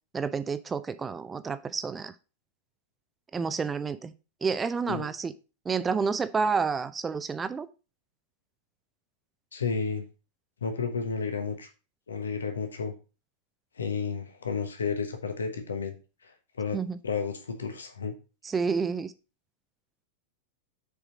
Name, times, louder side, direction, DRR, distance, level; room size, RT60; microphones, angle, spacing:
voice 1, 0.1-2.1 3.3-4.1 4.4-5.3 5.6-7.7 16.7-17.0 18.4-19.1, right 5 dB, 15° right, 13 dB, 0.6 m, -29 dB
voice 2, 9.5-10.0 10.6-11.7 12.1-12.9 13.8-15.9 16.2-16.8 17.0-18.1, left 5 dB, 70° left, 7 dB, 1.2 m, -32 dB
7.0 x 4.7 x 5.3 m, 0.32 s
figure-of-eight pair, 90°, 0 cm